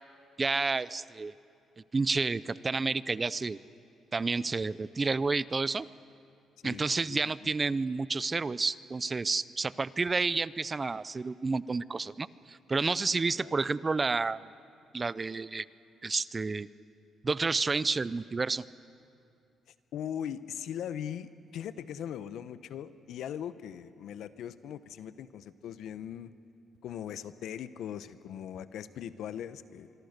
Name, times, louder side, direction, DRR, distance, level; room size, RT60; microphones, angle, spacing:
voice 1, 0.4-1.3 1.9-3.6 4.1-5.9 6.6-14.4 14.9-15.7 16.0-16.7 17.2-18.6, right 4 dB, 30° right, 18 dB, 0.5 m, -30 dB
voice 2, 7.1-7.5 13.4-13.5 19.9-26.3 26.8-29.9, left 9 dB, 75° left, 14 dB, 0.8 m, -40 dB
25.0 x 24.5 x 6.7 m, 2.5 s
cardioid pair, 90°, 0 cm